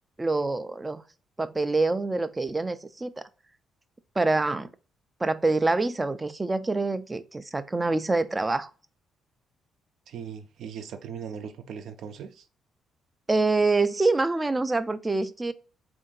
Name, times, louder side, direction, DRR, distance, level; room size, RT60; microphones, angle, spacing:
voice 1, 0.2-1.0 1.4-3.3 4.2-4.7 5.2-8.7 13.3-15.5, right 3 dB, 20° right, 0.4 m, -26 dB
voice 2, 10.1-12.5, right 7 dB, 75° right, 0.5 m, -39 dB
3.6 x 2.6 x 3.9 m
cardioid pair, 90°, 0 cm